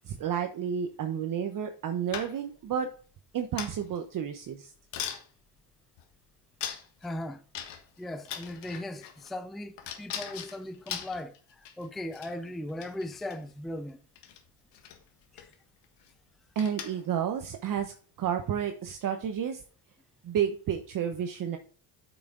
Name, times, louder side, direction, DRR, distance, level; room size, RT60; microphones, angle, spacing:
voice 1, 0.0-2.9 3.3-4.7 16.6-19.6 20.2-21.6, right 8 dB, 50° right, 1.0 m, -31 dB
sound 1, 2.1-2.6 3.6-4.0 4.5-4.6 4.9-5.2 6.0-6.1 6.6-7.1 7.5-8.0 8.2-9.3 9.8-11.9 12.1-12.3 12.7-13.4 14.2-14.4 14.7-15.0 15.4-15.5 15.8-16.1 16.6-17.1, left 9 dB, 75° left, 1.7 m, -39 dB
voice 2, 7.0-7.4 8.0-14.0 15.3-15.5, left 1 dB, ahead, 0.5 m, -38 dB
8.4 x 6.1 x 3.8 m
cardioid pair, 100°, 43 cm